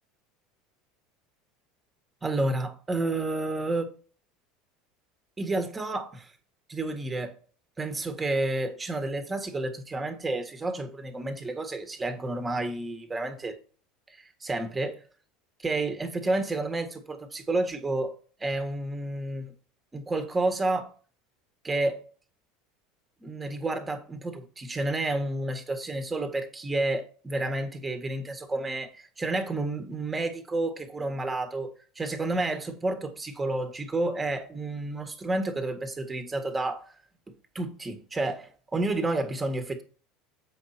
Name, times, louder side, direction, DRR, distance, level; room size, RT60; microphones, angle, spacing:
voice 1, 2.2-3.9 5.4-6.3 6.7-7.3 7.8-13.6 14.2-15.0 15.6-18.1 18.4-19.5 19.9-20.9 21.6-22.0 23.2-36.9 37.6-39.8, right 2 dB, 20° right, 1.8 m, -30 dB
8.1 x 5.4 x 4.4 m
hypercardioid pair, 80°, 0 cm